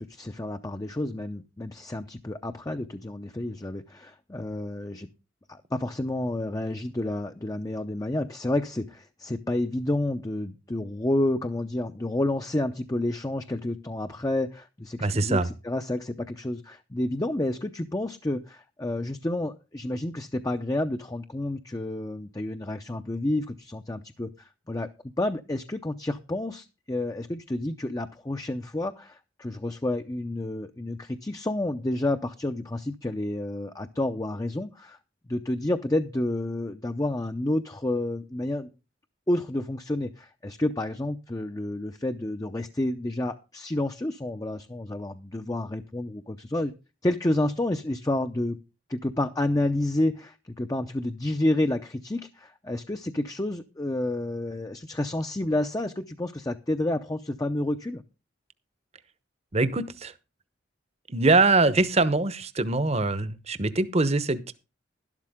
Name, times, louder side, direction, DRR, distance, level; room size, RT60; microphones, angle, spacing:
voice 1, 0.0-5.1 5.5-24.9 25.2-35.0 35.3-38.7 39.3-46.7 47.0-48.6 48.9-58.0, left 1 dB, 20° left, 7 dB, 0.7 m, -30 dB
voice 2, 15.0-15.5 59.5-60.1 61.1-64.5, right 3 dB, 35° right, 14 dB, 1.0 m, -23 dB
12.0 x 12.0 x 3.6 m, 0.29 s
head